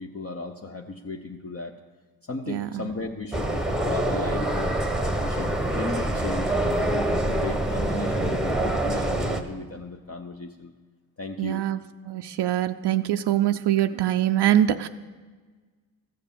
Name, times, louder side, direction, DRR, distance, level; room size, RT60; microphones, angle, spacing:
voice 1, 0.0-1.7 2.2-4.8 5.2-10.7 11.2-11.6, left 3 dB, 35° left, 3 dB, 0.7 m, -36 dB
voice 2, 2.5-2.9 11.4-11.8 12.1-14.9, right 12 dB, 70° right, 8 dB, 0.5 m, -23 dB
sound 1, 3.3-9.4, right 1 dB, ahead, 1.0 m, -25 dB
14.0 x 6.7 x 7.1 m, 1.4 s
cardioid pair, 80°, 43 cm